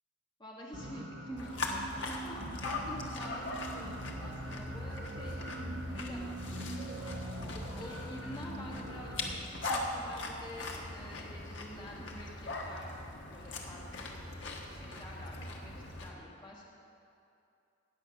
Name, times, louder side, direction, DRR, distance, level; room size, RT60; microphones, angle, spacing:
voice 1, 0.4-2.5 2.8-5.4 5.9-6.7 7.4-12.9 13.3-16.6, left 1 dB, 25° left, -4 dB, 1.4 m, -48 dB
sound 1, 0.7-9.3, right 1 dB, 50° right, 1.0 m, -43 dB
sound 2, 1.4-16.1, left 2 dB, 65° left, 1.3 m, -40 dB
18.0 x 7.1 x 5.9 m, 2.6 s
head